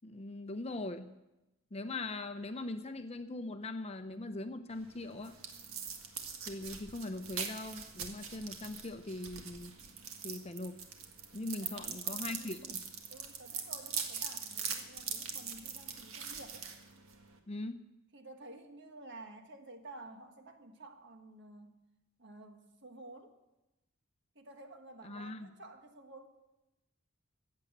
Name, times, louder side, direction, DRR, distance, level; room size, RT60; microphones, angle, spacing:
voice 1, 0.0-1.1 1.7-5.4 6.5-9.7 10.2-10.8 11.3-12.8 17.5-17.8 25.0-25.5, left 2 dB, 30° left, 9 dB, 0.7 m, -41 dB
sound 1, 4.7-17.4, right 7 dB, 75° right, 1.7 m, -42 dB
voice 2, 11.6-12.8 13.1-16.7 18.1-21.8 22.2-23.4 24.3-26.3, right 2 dB, 55° right, 6 dB, 1.5 m, -52 dB
14.5 x 8.7 x 8.0 m, 0.98 s
head